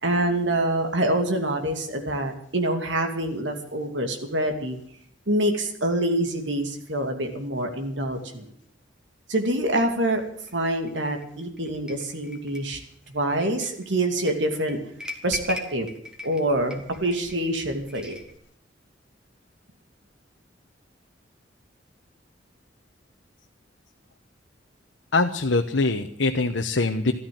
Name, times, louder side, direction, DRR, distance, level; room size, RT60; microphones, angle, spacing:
voice 1, 0.0-4.8 5.3-8.5 9.3-10.2 10.5-12.8 13.1-14.8 15.2-15.9 16.2-18.2, right 1 dB, 70° right, 5 dB, 2.7 m, -26 dB
sound 1, 9.8-18.4, left 2 dB, 5° right, 2.0 m, -41 dB
voice 2, 25.1-27.1, left 3 dB, 75° left, 4 dB, 1.0 m, -23 dB
13.5 x 13.5 x 7.8 m, 0.62 s
head